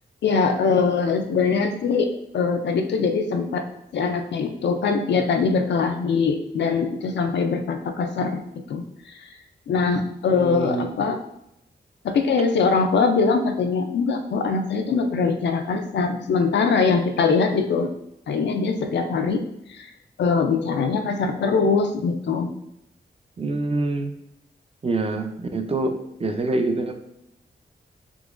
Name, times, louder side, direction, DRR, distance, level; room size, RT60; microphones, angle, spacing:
voice 1, 0.2-3.6 3.9-8.4 8.7-8.8 9.7-11.2 12.0-17.9 18.3-19.4 19.7-19.9 20.2-22.5, left 4 dB, 80° left, 6 dB, 0.4 m, -22 dB
voice 2, 10.3-10.9 23.4-24.2 24.8-26.9, right 2 dB, 35° right, 6 dB, 0.4 m, -26 dB
3.7 x 2.9 x 2.4 m, 0.80 s
cardioid pair, 60°, 18 cm